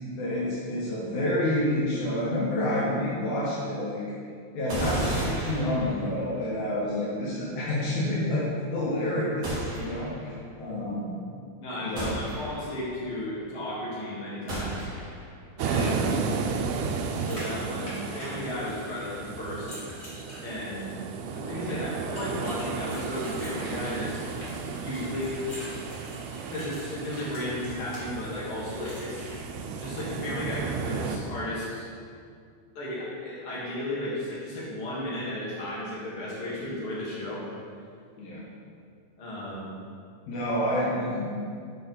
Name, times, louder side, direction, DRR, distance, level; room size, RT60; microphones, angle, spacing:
voice 1, 0.2-4.0 4.5-8.5 8.7-10.3 10.6-11.2 11.8-12.1 15.7-16.0 21.6-21.8 38.2-38.4 40.3-41.3, left 1 dB, 75° left, -7 dB, 2.4 m, -28 dB
sound 1, 4.7-6.3 9.4-10.3 12.0-12.9 14.5-15.3, right 1 dB, 40° right, 1.4 m, -33 dB
voice 2, 11.6-14.9 15.6-16.2 17.1-19.8 20.4-20.9 21.3-24.2 24.8-25.4 26.5-29.3 29.7-31.8 32.7-37.4 39.2-39.7, left 1 dB, 50° left, -7 dB, 2.3 m, -34 dB
sound 2, 15.6-31.2, right 5 dB, 85° right, 2.1 m, -33 dB
sound 3, 16.5-19.0 19.5-21.0 22.2-28.0 28.8-29.3, equal, 30° left, 1.3 m, -45 dB
6.9 x 5.4 x 3.9 m, 2.3 s
omnidirectional pair, 3.5 m